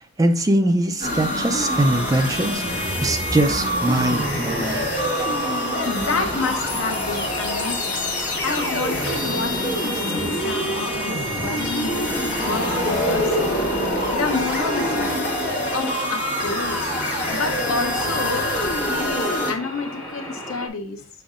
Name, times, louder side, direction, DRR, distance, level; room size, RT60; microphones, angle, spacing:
voice 1, 0.2-4.9, right 1 dB, 15° right, 0.4 m, -22 dB
sound 1, 1.0-19.5, equal, 40° left, 2.1 m, -25 dB
sound 2, 3.9-20.7, equal, 5° left, 2.1 m, -35 dB
voice 2, 5.8-13.6 14.1-15.4 15.7-18.5 18.9-21.1, left 4 dB, 65° left, 0.9 m, -30 dB
6.9 x 6.0 x 2.5 m
head